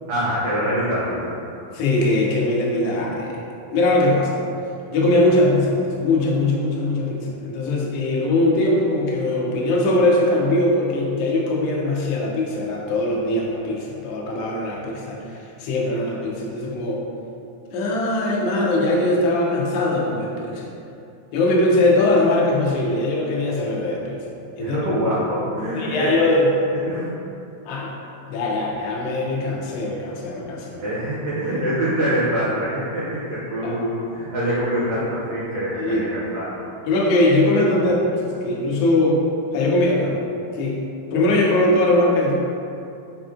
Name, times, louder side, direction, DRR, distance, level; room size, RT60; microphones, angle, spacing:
voice 1, 0.1-1.4 24.6-26.2 26.8-27.1 30.8-36.6, equal, 75° right, -9 dB, 1.4 m, -24 dB
voice 2, 1.7-3.4 3.7-4.3 4.9-17.0 17.7-20.7 21.3-24.2 24.6-24.8 25.7-26.5 27.6-27.9 28.3-30.8 33.6-33.7 35.8-36.0 36.9-39.2 39.5-40.2 40.5-40.8 41.1-42.4, left 2 dB, 90° left, -3 dB, 1.4 m, -21 dB
5.0 x 2.5 x 2.4 m, 2.7 s
omnidirectional pair, 3.4 m